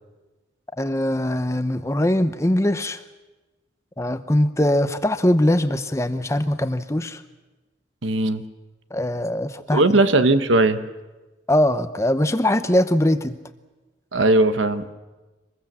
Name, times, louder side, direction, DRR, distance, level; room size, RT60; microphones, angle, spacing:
voice 1, 0.8-3.0 4.0-7.2 8.9-9.8 11.5-13.4, left 1 dB, 15° left, 10 dB, 0.7 m, -21 dB
voice 2, 8.0-8.4 9.7-10.8 14.1-14.8, right 2 dB, 90° right, 11 dB, 1.1 m, -18 dB
25.0 x 21.0 x 7.5 m, 1.2 s
head